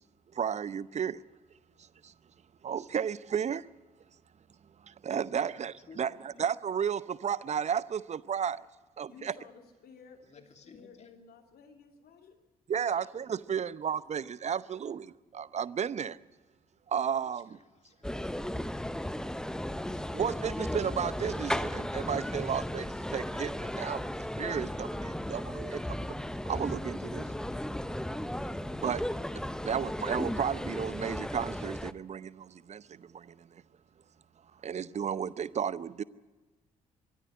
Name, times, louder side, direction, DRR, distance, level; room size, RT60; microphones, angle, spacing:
voice 1, 0.3-1.2 1.8-2.1 2.6-3.7 4.8-8.6 9.0-9.3 12.7-16.2 16.9-17.5 20.1-26.2 26.5-27.2 28.8-33.6 34.6-36.0, right 8 dB, 35° right, 0.7 m, -33 dB
voice 2, 5.9-6.4 10.2-11.1 17.3-18.3, left 5 dB, 35° left, 2.8 m, -56 dB
voice 3, 9.1-12.4 12.7-13.4 13.9-14.3, left 5 dB, 55° left, 2.9 m, -55 dB
sound 1, 18.0-31.9, left 1 dB, 5° left, 0.9 m, -35 dB
23.5 x 13.5 x 9.6 m
figure-of-eight pair, 45°, 19 cm